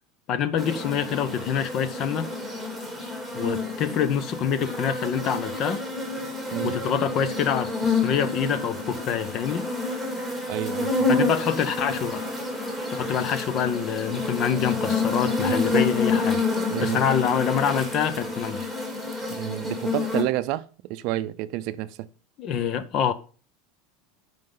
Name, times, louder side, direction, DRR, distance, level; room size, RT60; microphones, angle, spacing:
voice 1, 0.3-2.3 3.3-5.9 6.6-9.6 11.1-12.2 12.9-16.4 16.8-18.7 22.4-23.1, left 8 dB, 35° left, 0.7 m, -26 dB
sound 1, 0.6-20.2, left 3 dB, 5° left, 2.6 m, -28 dB
voice 2, 10.5-11.1 16.7-17.0 19.3-22.1, right 15 dB, 50° right, 0.5 m, -29 dB
13.0 x 5.2 x 3.9 m
supercardioid pair, 165°, 0 cm